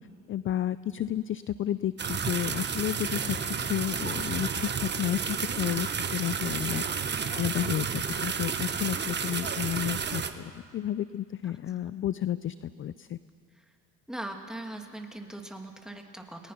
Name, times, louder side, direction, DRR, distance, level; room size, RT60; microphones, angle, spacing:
voice 1, 0.3-13.2, left 11 dB, 35° left, 16 dB, 0.5 m, -32 dB
sound 1, 2.0-10.3, right 6 dB, 30° right, 1.3 m, -31 dB
voice 2, 14.1-16.5, right 1 dB, ahead, 2 dB, 2.7 m, -40 dB
29.5 x 19.5 x 6.0 m, 2.2 s
supercardioid pair, 90°, 36 cm